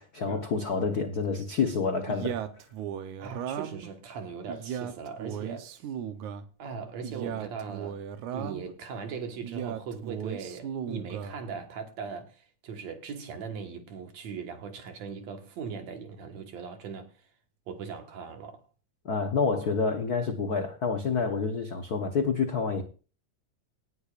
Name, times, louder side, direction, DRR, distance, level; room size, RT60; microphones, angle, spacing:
voice 1, 0.0-2.4 19.0-22.8, left 5 dB, 65° left, 0.9 m, -28 dB
Male speech man speaking, 2.1-3.9 4.5-6.5 7.0-8.7 9.4-11.4, right 9 dB, 85° right, 2.4 m, -36 dB
voice 2, 3.2-5.9 6.6-8.0 8.3-17.1 17.7-18.6, right 5 dB, 70° right, 2.7 m, -39 dB
18.5 x 10.0 x 2.5 m
omnidirectional pair, 3.3 m